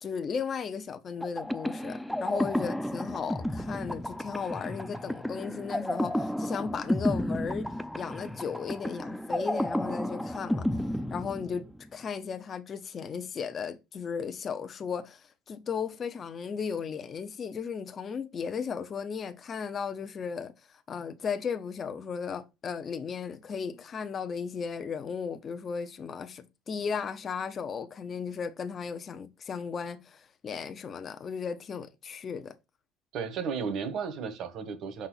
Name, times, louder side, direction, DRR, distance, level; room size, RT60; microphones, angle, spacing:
voice 1, 0.0-7.7 7.9-10.7 11.1-32.5, left 6 dB, 40° left, 0.7 m, -35 dB
sound 1, 1.2-11.9, left 1 dB, ahead, 0.5 m, -32 dB
voice 2, 33.1-35.1, right 6 dB, 60° right, 1.5 m, -34 dB
5.5 x 4.2 x 4.0 m
supercardioid pair, 100°, 0 cm